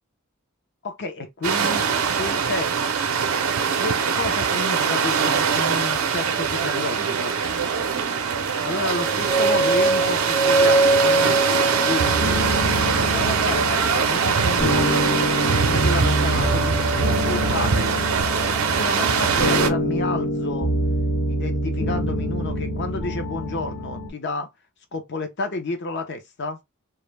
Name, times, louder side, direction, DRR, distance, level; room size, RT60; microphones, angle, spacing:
voice 1, 0.8-1.8 2.2-3.1 3.8-7.4 8.6-15.1 15.5-17.9 18.8-20.7 21.3-24.5 24.9-26.6, left 3 dB, 55° left, 0.7 m, -31 dB
sound 1, 1.4-19.7, right 6 dB, 80° right, 0.5 m, -22 dB
sound 2, 9.0-13.1, right 2 dB, 5° left, 0.6 m, -22 dB
sound 3, 12.0-24.1, equal, 85° left, 1.2 m, -25 dB
2.4 x 2.1 x 3.1 m
head